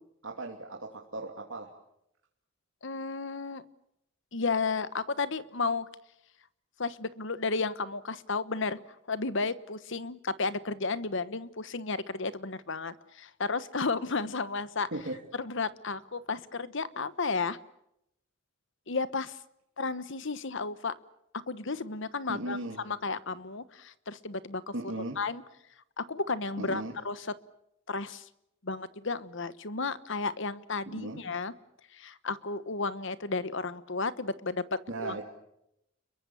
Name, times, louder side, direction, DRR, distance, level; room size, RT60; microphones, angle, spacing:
voice 1, 0.2-1.7 14.9-15.2 22.3-22.8 24.7-25.2 26.6-26.9 30.9-31.2 34.9-35.2, right 2 dB, 65° right, 1 dB, 2.8 m, -37 dB
voice 2, 2.8-3.6 4.3-5.9 6.8-8.8 9.1-14.9 15.4-17.6 18.9-19.4 19.8-20.9 21.5-22.6 22.8-24.7 25.2-25.4 26.0-27.3 27.9-28.2 28.6-31.5 31.9-35.1, left 4 dB, 65° left, 15 dB, 1.2 m, -33 dB
29.5 x 22.5 x 7.1 m, 0.80 s
head